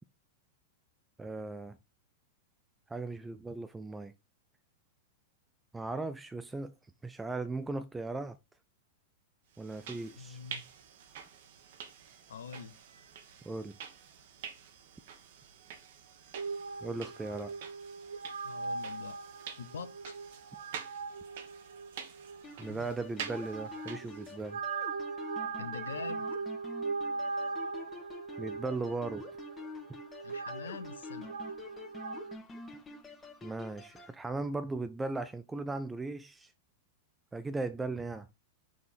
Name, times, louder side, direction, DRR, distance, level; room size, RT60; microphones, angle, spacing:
voice 1, 1.2-1.8 2.9-4.1 5.7-6.7 7.0-8.4 9.6-10.4 13.4-13.8 16.8-17.5 22.6-24.6 28.4-29.2 33.4-36.5 37.3-38.3, right 3 dB, 10° right, 0.5 m, -37 dB
sound 1, 9.5-24.5, right 8 dB, 60° right, 1.3 m, -48 dB
voice 2, 10.2-10.6 12.3-12.8 18.4-19.2 19.6-20.2 22.7-22.9 25.6-26.4 30.2-31.3, left 6 dB, 75° left, 0.7 m, -44 dB
sound 2, 16.3-32.4, right 4 dB, 80° right, 1.0 m, -40 dB
sound 3, 22.4-34.1, left 3 dB, 20° left, 1.4 m, -48 dB
6.1 x 3.5 x 4.3 m
hypercardioid pair, 100°, 0 cm